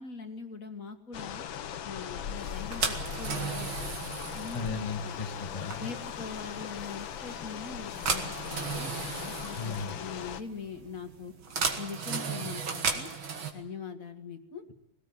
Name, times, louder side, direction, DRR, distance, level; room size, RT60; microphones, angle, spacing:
voice 1, 0.0-1.4 1.8-3.7 4.3-5.2 5.8-11.3 11.8-13.1 13.5-14.6, left 5 dB, 40° left, 6 dB, 2.3 m, -42 dB
sound 1, 1.1-10.4, left 9 dB, 70° left, 1.7 m, -39 dB
sound 2, 2.4-13.5, right 5 dB, 70° right, 2.9 m, -35 dB
voice 2, 4.5-5.9 9.6-10.0, left 5 dB, 20° left, 4 dB, 1.3 m, -36 dB
21.5 x 17.5 x 9.7 m, 0.83 s
omnidirectional pair, 2.3 m